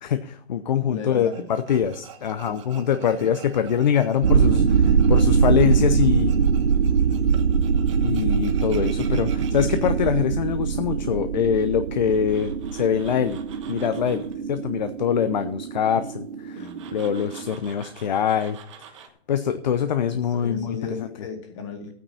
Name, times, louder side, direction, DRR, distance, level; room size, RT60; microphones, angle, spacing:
voice 1, 0.0-6.3 8.0-13.4 13.7-16.7 16.9-18.6 19.3-21.1, left 8 dB, 45° left, 10 dB, 0.8 m, -24 dB
voice 2, 0.8-1.5 2.5-3.3 16.5-16.9 20.1-22.0, left 4 dB, 30° left, 4 dB, 2.2 m, -36 dB
Tools, 1.3-9.9 12.1-14.3 16.6-19.1, right 8 dB, 30° right, 1.2 m, -47 dB
sound 1, 4.2-17.5, right 6 dB, 60° right, 0.9 m, -22 dB
13.0 x 9.2 x 4.2 m, 0.62 s
hypercardioid pair, 160°, 31 cm